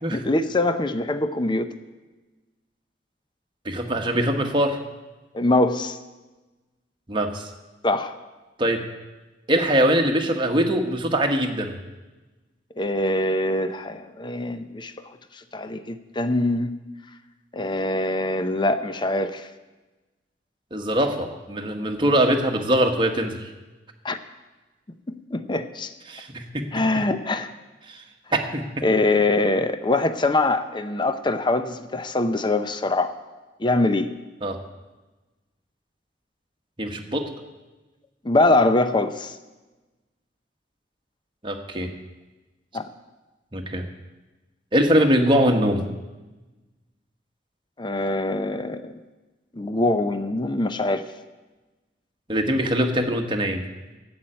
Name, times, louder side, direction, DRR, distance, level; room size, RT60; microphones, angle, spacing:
voice 1, 0.1-1.7 5.3-6.0 7.8-8.1 12.8-14.9 15.5-16.7 17.5-19.5 24.0-24.2 25.1-25.9 26.7-27.5 28.8-33.1 33.6-34.1 38.2-39.4 42.7-42.9 47.8-48.9 49.5-51.0, left 2 dB, 25° left, 10 dB, 0.6 m, -23 dB
voice 2, 3.6-4.8 7.1-7.5 8.6-8.8 9.5-11.8 20.7-23.5 26.1-27.0 27.9-28.0 28.3-28.9 34.4-34.6 36.8-37.3 41.4-41.9 43.5-43.8 44.7-45.8 52.3-53.6, right 1 dB, 30° right, 3 dB, 1.3 m, -22 dB
11.0 x 7.9 x 8.8 m, 1.2 s
head